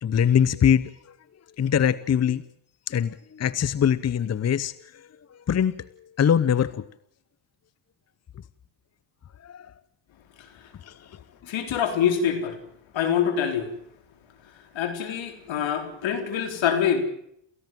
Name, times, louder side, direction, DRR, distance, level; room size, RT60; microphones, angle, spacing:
voice 1, 0.0-1.1 1.6-2.4 2.9-5.9 6.2-6.8 9.4-9.7 10.8-11.2, left 8 dB, 35° left, 17 dB, 0.8 m, -23 dB
voice 2, 11.5-12.6 12.9-13.7 14.7-17.0, left 8 dB, 70° left, 7 dB, 4.1 m, -25 dB
28.5 x 15.5 x 7.6 m, 0.74 s
supercardioid pair, 75°, 48 cm